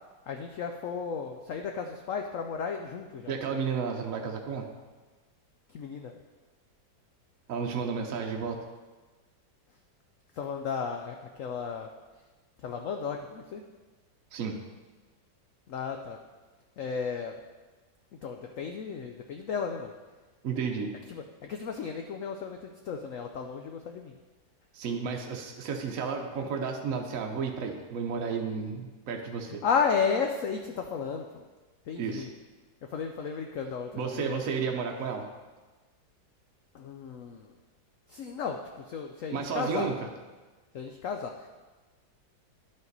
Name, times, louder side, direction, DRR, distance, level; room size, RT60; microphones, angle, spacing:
voice 1, 0.3-3.6 5.7-6.1 10.3-11.9 12.6-13.6 15.7-16.2 16.8-17.3 18.2-19.9 21.1-24.1 29.6-31.4 31.9-32.3 32.8-34.6 36.7-37.6 38.1-39.9 40.7-41.5, left 6 dB, 85° left, 4 dB, 0.7 m, -34 dB
voice 2, 3.3-4.7 7.5-8.6 14.3-14.6 20.4-20.9 24.7-29.6 32.0-32.3 34.0-35.3 39.3-40.0, right 5 dB, 60° right, 2 dB, 0.9 m, -32 dB
11.5 x 5.4 x 4.0 m, 1.3 s
omnidirectional pair, 2.0 m